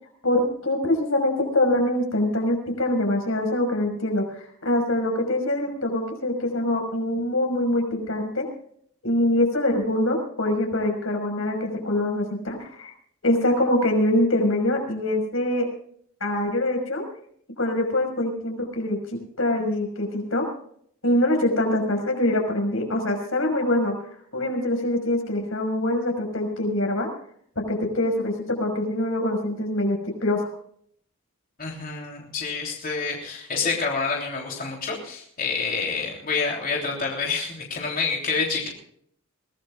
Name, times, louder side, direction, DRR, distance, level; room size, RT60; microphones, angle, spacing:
voice 1, 0.2-8.5 9.0-12.9 13.2-15.7 16.2-17.0 17.6-20.5 21.0-23.9 24.3-27.1 27.7-30.4, left 1 dB, 85° left, 3 dB, 5.6 m, -24 dB
voice 2, 31.6-38.7, left 4 dB, 45° left, -1 dB, 3.3 m, -28 dB
23.0 x 17.5 x 2.5 m, 0.64 s
head